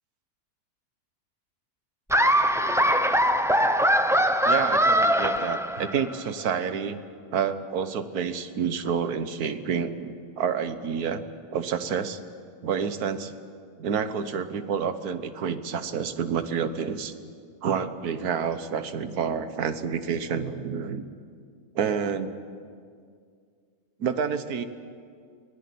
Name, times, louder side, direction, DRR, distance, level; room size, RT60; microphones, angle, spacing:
Laughter, 2.1-6.1, equal, 5° right, 0.5 m, -22 dB
voice 1, 4.4-7.0 7.3-11.2 11.5-12.2 12.6-13.4 13.8-17.1 17.6-21.1 21.7-22.3 24.0-24.7, right 7 dB, 85° right, 11 dB, 1.6 m, -29 dB
24.5 x 17.5 x 8.5 m, 2.2 s
omnidirectional pair, 1.6 m